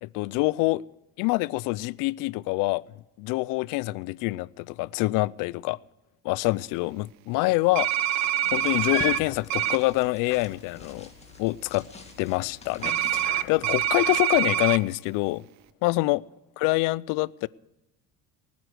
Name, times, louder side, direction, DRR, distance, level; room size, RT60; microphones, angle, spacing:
voice 1, 0.0-0.8 1.2-2.8 3.2-5.8 6.2-11.1 11.4-11.9 12.2-15.4 15.8-16.2 16.6-17.5, left 21 dB, 70° left, 0.5 m, -26 dB
sound 1, 7.7-9.2 9.5-9.8 12.8-14.8, right 13 dB, 55° right, 0.8 m, -25 dB
sound 2, 7.9-13.6, left 3 dB, 20° left, 2.2 m, -46 dB
sound 3, 8.5-14.3, left 14 dB, 85° left, 1.1 m, -42 dB
19.0 x 9.5 x 6.3 m
cardioid pair, 120°, 33 cm